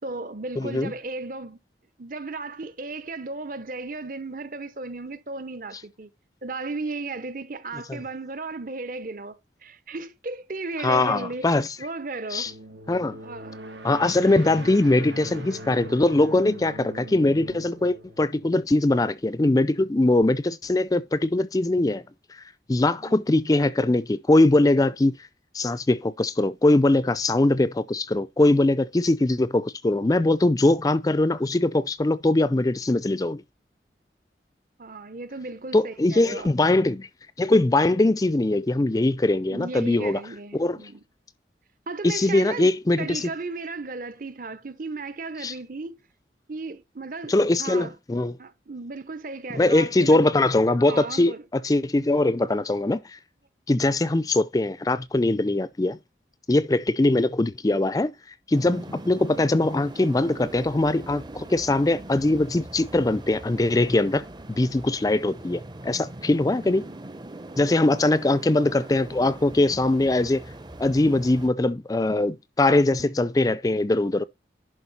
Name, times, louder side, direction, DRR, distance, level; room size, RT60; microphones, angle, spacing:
voice 1, 0.0-1.6 2.0-6.1 6.4-12.5 13.2-13.8 23.0-23.2 34.8-36.5 39.5-41.0 41.9-46.0 46.5-47.3 47.6-47.9 48.4-50.3 50.9-51.4 68.0-68.1 73.0-73.1, right 3 dB, 50° right, 1.0 m, -35 dB
voice 2, 0.6-0.9 10.8-11.7 12.3-12.5 12.9-13.2 13.8-22.0 22.3-25.3 25.5-33.4 35.7-37.1 37.4-40.2 40.5-40.8 42.0-43.3 45.4-45.5 47.3-48.3 49.6-53.2 53.7-56.0 56.5-58.1 58.5-64.3 64.6-66.9 67.6-70.4 70.8-74.2, left 2 dB, 20° left, 0.4 m, -22 dB
sound 1, 12.4-19.1, right 1 dB, 85° right, 1.5 m, -41 dB
sound 2, 58.5-71.5, right 1 dB, 25° right, 0.7 m, -41 dB
11.0 x 4.6 x 4.2 m
head